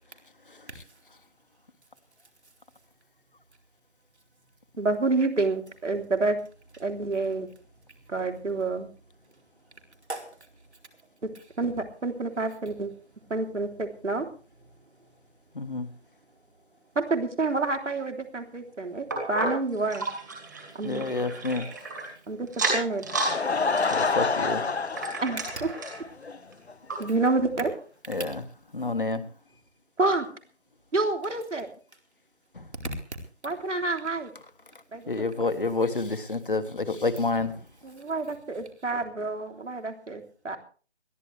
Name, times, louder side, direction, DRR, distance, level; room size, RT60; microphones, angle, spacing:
voice 1, 4.8-6.4 6.8-7.5 8.1-8.9 11.6-12.9 13.3-14.3 17.0-20.1 20.8-21.0 22.3-23.1 25.2-25.4 27.0-27.7 30.0-30.3 30.9-31.7 33.4-34.3 34.9-35.1 37.8-40.6, right 3 dB, 80° right, 5 dB, 3.5 m, -28 dB
voice 2, 9.3-9.8 10.1-10.6 10.9-11.0 14.7-15.1 15.4-15.8 28.8-28.9, right 2 dB, 65° right, 3 dB, 4.4 m, -44 dB
voice 3, 15.5-15.9 20.8-21.7 23.9-24.6 28.1-28.4 28.7-29.2 32.5-32.7 35.1-37.6, left 3 dB, 45° left, 9 dB, 1.5 m, -28 dB
sound 1, 19.1-22.1 22.5-23.4 23.7-26.0 26.5-26.6 26.9-27.0 27.6-27.7, right 2 dB, 15° right, 2.5 m, -32 dB
Laughter / Crowd, 22.9-26.4 26.7-26.8 27.3-27.4 27.6-27.7, left 4 dB, 60° left, 1.0 m, -28 dB
21.5 x 15.0 x 3.4 m, 0.39 s
figure-of-eight pair, 180°, 36 cm